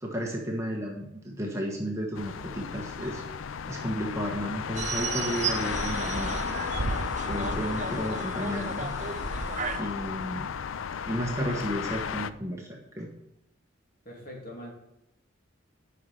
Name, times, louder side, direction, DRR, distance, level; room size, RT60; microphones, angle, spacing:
voice 1, 0.0-3.2 3.7-6.4 7.3-8.9 9.7-10.5 11.1-13.1, equal, 15° right, -1 dB, 1.3 m, -33 dB
sound 1, 2.2-12.3, left 7 dB, 80° left, 0.4 m, -34 dB
sound 2, 4.8-9.8, right 4 dB, 35° right, 0.6 m, -33 dB
voice 2, 14.0-14.7, equal, 45° left, -2 dB, 2.7 m, -42 dB
8.4 x 5.6 x 6.4 m, 0.87 s
head